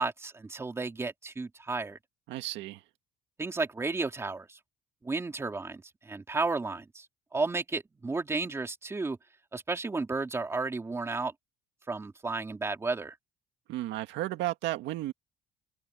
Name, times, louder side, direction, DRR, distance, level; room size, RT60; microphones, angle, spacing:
voice 1, 0.0-2.0 3.4-4.6 5.0-7.1 7.3-9.2 9.5-11.3 11.9-13.1, right 3 dB, 15° right, 2.8 m, -33 dB
voice 2, 2.3-2.8 13.7-15.1, right 15 dB, 80° right, 2.0 m, -33 dB
open air
cardioid pair, 155°, 18 cm